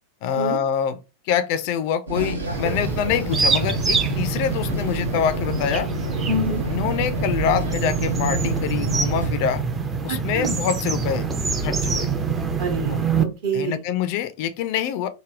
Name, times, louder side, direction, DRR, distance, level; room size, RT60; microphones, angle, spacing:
voice 1, 0.2-1.0 1.3-5.9 6.7-9.6 10.0-11.3 11.6-12.1 12.9-13.0 13.5-15.1, left 8 dB, 45° left, 0.4 m, -25 dB
sound 1, 2.1-9.3, right 1 dB, 75° right, 0.7 m, -29 dB
sound 2, 2.4-13.2, right 5 dB, 20° right, 0.5 m, -25 dB
voice 2, 6.3-6.6 10.1-10.6 12.6-13.8, right 2 dB, 50° right, 1.0 m, -27 dB
3.2 x 2.2 x 2.4 m
figure-of-eight pair, 90°, 0 cm